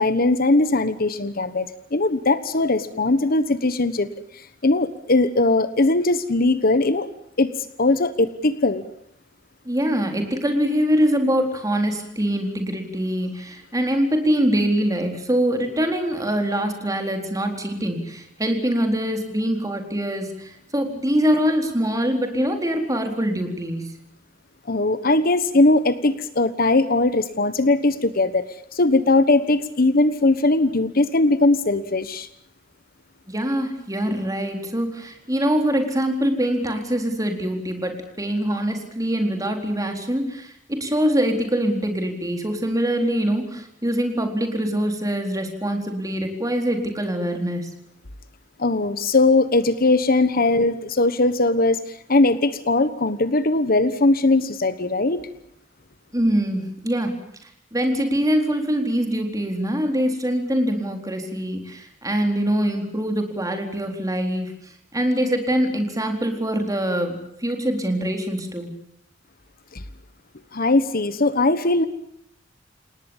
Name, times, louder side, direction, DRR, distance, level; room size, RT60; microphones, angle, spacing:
voice 1, 0.0-4.1 4.3-7.1 7.4-8.8 24.7-32.3 48.6-55.2 69.7-69.8 70.5-71.8, left 2 dB, 50° left, 13 dB, 1.2 m, -20 dB
voice 2, 9.6-24.0 33.3-47.7 56.1-57.1 57.7-68.7, equal, 20° right, 4 dB, 4.1 m, -24 dB
29.0 x 18.5 x 7.3 m, 0.74 s
head